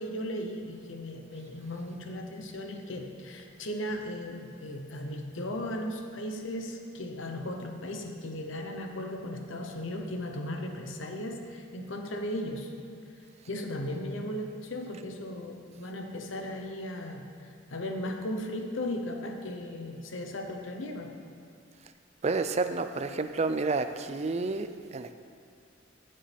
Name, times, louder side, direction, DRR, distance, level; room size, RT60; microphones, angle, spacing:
voice 1, 0.0-12.7 13.5-21.2, left 1 dB, 85° left, 4 dB, 0.9 m, -36 dB
voice 2, 22.2-25.1, right 3 dB, 35° right, 9 dB, 0.4 m, -30 dB
14.0 x 7.7 x 3.5 m, 2.3 s
head